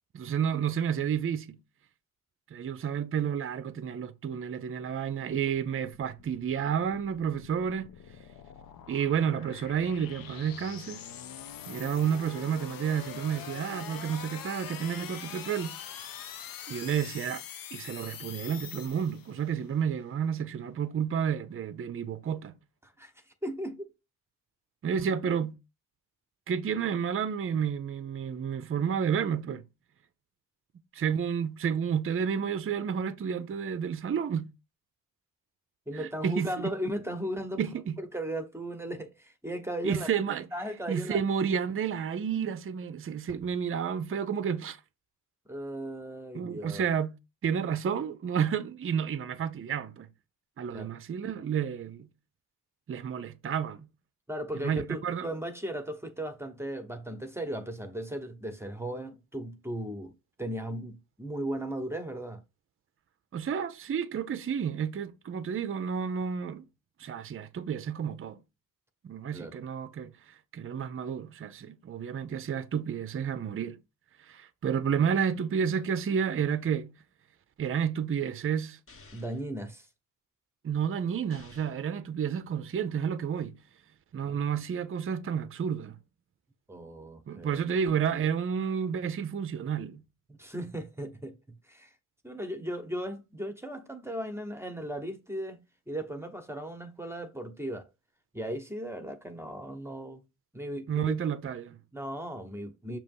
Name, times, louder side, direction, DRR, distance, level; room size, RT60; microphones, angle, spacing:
voice 1, 0.1-1.6 2.5-7.9 8.9-11.0 11.7-15.8 16.7-17.4 17.7-22.5 24.8-25.6 26.5-29.6 30.9-34.5 35.9-36.7 37.6-38.0 39.8-40.5 40.9-44.8 46.3-47.1 47.4-50.1 50.6-52.1 52.9-53.9 54.6-55.3 63.3-66.7 67.0-68.4 69.0-70.1 70.5-73.8 74.2-77.0 77.6-78.8 80.6-83.6 84.1-86.0 87.3-90.0 100.9-101.8, right 7 dB, 40° right, 0.5 m, -31 dB
sound 1, 5.2-19.5, left 9 dB, 90° left, 0.7 m, -44 dB
voice 2, 23.4-23.9 35.9-37.6 38.0-40.1 40.5-41.2 45.5-46.8 50.7-50.9 54.3-60.1 60.4-62.4 69.3-69.6 79.1-79.9 84.2-84.4 86.7-87.6 90.3-91.4 91.7-91.9 92.2-95.6 95.9-97.9 98.3-100.2 100.5-101.1 101.9-103.0, right 1 dB, 10° right, 1.0 m, -36 dB
sound 2, 78.9-79.5 81.3-81.9, left 3 dB, 40° left, 1.2 m, -54 dB
6.6 x 2.9 x 5.3 m
wide cardioid pair, 115°, 33 cm